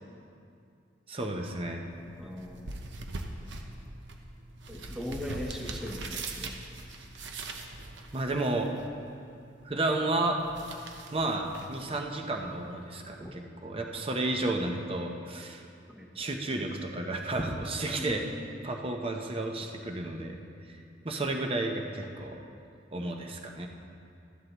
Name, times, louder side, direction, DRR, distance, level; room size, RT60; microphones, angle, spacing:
voice 1, 1.1-1.8 8.1-8.7 9.6-10.4 11.1-15.6 16.2-18.2 18.6-20.4 21.0-22.4 22.9-23.7, right 2 dB, 30° right, 2 dB, 0.8 m, -32 dB
sound 1, 1.9-12.9, right 3 dB, 75° right, 0.9 m, -43 dB
voice 2, 2.2-2.7 4.7-6.6 13.2-13.4 15.9-16.1 17.9-18.5, left 1 dB, 5° right, 0 dB, 1.0 m, -39 dB
13.0 x 11.0 x 3.0 m, 2.5 s
head